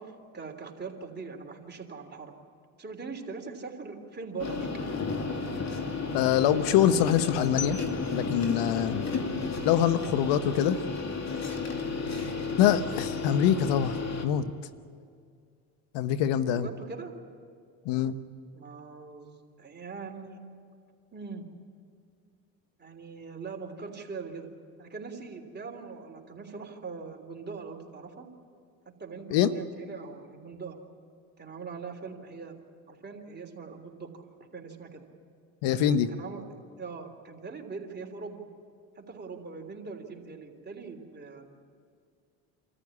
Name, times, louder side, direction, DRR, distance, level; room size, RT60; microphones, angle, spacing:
voice 1, 0.0-2.3 2.8-5.0 16.5-17.1 18.5-20.4 21.1-21.5 22.8-24.5 24.8-28.3 29.0-30.8 31.4-32.6 32.9-34.2 34.5-35.0 35.8-36.4 36.8-38.4 38.9-41.5, right 4 dB, 25° right, 2 dB, 3.3 m, -41 dB
sound 1, 4.4-14.3, left 4 dB, 40° left, 2.7 m, -32 dB
voice 2, 6.1-7.8 8.1-9.1 9.6-10.8 12.6-14.0 14.2-14.5 15.9-16.7 17.8-18.2 29.3-29.5 35.6-36.1, left 10 dB, 70° left, 12 dB, 1.1 m, -24 dB
26.5 x 14.0 x 9.7 m, 2.2 s
supercardioid pair, 85°, 43 cm